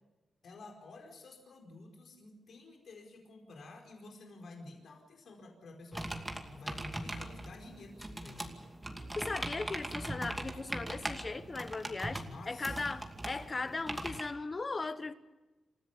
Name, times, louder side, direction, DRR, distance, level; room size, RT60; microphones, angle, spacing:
voice 1, 0.4-8.5 12.3-12.9, left 2 dB, 70° left, 4.7 m, -51 dB
sound 1, 5.9-14.2, right 1 dB, 15° right, 2.5 m, -40 dB
voice 2, 9.2-15.1, left 3 dB, 30° left, 1.2 m, -38 dB
28.0 x 15.5 x 7.0 m
wide cardioid pair, 120°, 0 cm